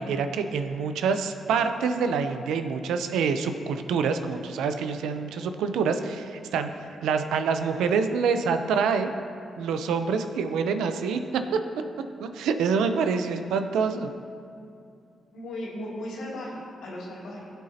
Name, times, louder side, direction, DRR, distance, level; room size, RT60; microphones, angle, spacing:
voice 1, 0.0-6.7 7.0-9.1 9.6-11.4 12.2-14.1, right 5 dB, 85° right, 8 dB, 0.6 m, -26 dB
voice 2, 15.3-17.5, left 1 dB, 85° left, -5 dB, 2.7 m, -36 dB
16.5 x 8.0 x 2.9 m, 2.4 s
cardioid pair, 65°, 0 cm